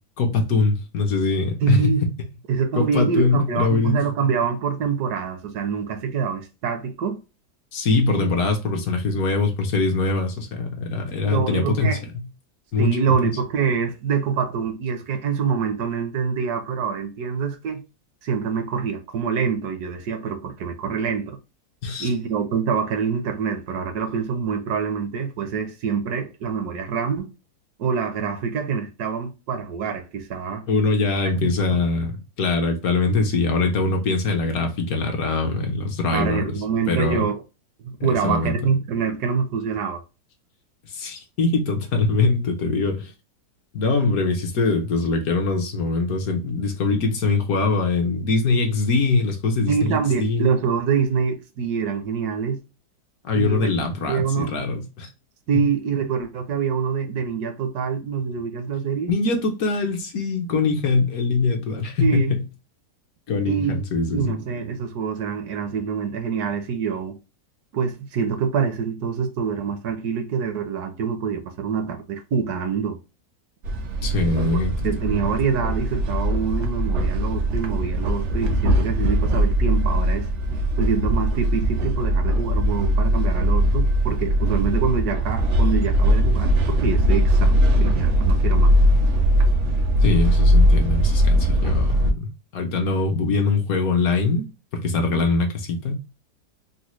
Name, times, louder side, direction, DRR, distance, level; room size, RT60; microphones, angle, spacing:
voice 1, 0.2-2.0 2.8-4.0 7.7-12.0 12.7-13.0 13.2-13.3 21.8-22.1 30.7-36.6 36.9-37.2 38.0-38.5 40.9-43.1 43.7-50.5 53.2-55.1 55.5-55.7 59.1-62.4 63.3-64.4 74.0-75.3 90.0-92.3 92.5-94.5 94.7-95.9, left 3 dB, 70° left, 1.1 m, -22 dB
voice 2, 1.6-2.0 2.5-7.2 8.2-8.3 11.2-12.0 12.8-17.8 18.2-21.4 22.0-27.3 27.8-30.7 31.4-31.5 36.1-37.4 37.8-40.0 49.7-52.6 53.3-53.7 54.1-54.6 55.5-59.1 62.0-62.3 63.5-63.8 64.1-67.2 67.7-73.0 74.8-80.3 80.8-88.7, right 6 dB, 75° right, 1.2 m, -25 dB
sound 1, 73.6-92.1, equal, 60° right, 0.8 m, -20 dB
4.0 x 2.0 x 3.0 m
omnidirectional pair, 1.7 m